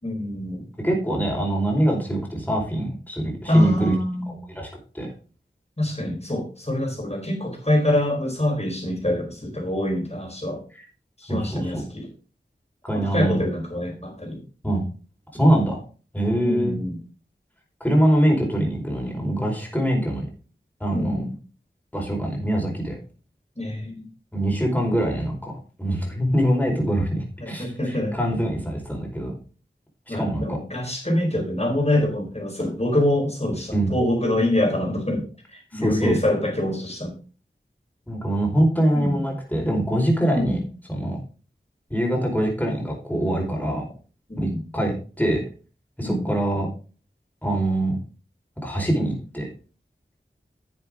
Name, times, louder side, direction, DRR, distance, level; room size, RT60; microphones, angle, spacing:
voice 1, 0.0-0.7 3.5-4.4 5.8-10.6 11.2-12.1 12.9-14.4 16.4-17.0 20.9-21.3 23.6-24.1 27.4-28.2 30.1-35.2 35.5-37.1 38.9-39.2 40.3-40.7 44.3-44.6 46.0-46.2, left 1 dB, 35° left, 2 dB, 4.6 m, -25 dB
voice 2, 0.8-3.9 4.5-4.7 4.9-5.1 10.7-10.8 11.3-11.8 12.8-13.4 14.6-14.8 15.4-15.8 16.1-16.8 17.8-20.2 20.8-21.3 21.9-23.0 24.3-25.5 25.8-29.3 30.1-30.6 33.7-33.9 35.7-36.2 38.1-40.6 40.9-41.2 41.9-43.8 44.4-45.4 46.0-46.7 47.4-48.0 48.6-49.5, right 1 dB, 10° left, -1 dB, 4.8 m, -23 dB
11.5 x 7.5 x 3.7 m, 0.36 s
wide cardioid pair, 45°, 19 cm